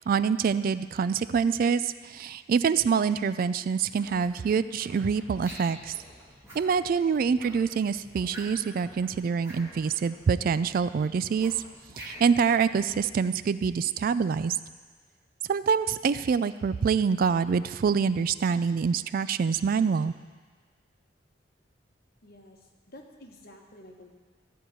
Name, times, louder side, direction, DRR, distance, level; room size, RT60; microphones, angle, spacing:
voice 1, 0.0-5.9 6.5-11.5 12.0-14.6 15.5-20.1, right 6 dB, 50° right, 14 dB, 0.3 m, -26 dB
sound 1, 3.8-13.1, equal, 5° left, 2.0 m, -54 dB
sound 2, 5.4-5.8 6.4-6.7 7.4-7.7 8.3-8.7 9.4-9.6 11.4-12.4, right 1 dB, 15° right, 3.0 m, -45 dB
voice 2, 22.2-24.1, left 1 dB, 55° left, 1 dB, 1.4 m, -50 dB
14.0 x 4.7 x 8.9 m, 1.5 s
head